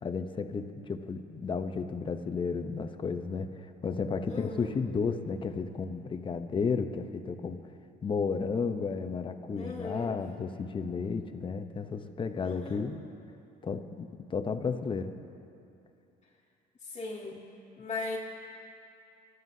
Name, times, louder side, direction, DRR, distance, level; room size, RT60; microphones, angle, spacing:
voice 1, 0.0-7.7 8.0-13.0 13.6-15.1, left 5 dB, 30° left, 8 dB, 0.8 m, -33 dB
voice 2, 4.3-4.7 9.5-10.1 12.4-12.9 16.8-17.4 17.8-18.2, left 3 dB, 50° left, -7 dB, 1.7 m, -38 dB
26.0 x 13.0 x 2.8 m, 2.7 s
cardioid pair, 110°, 17 cm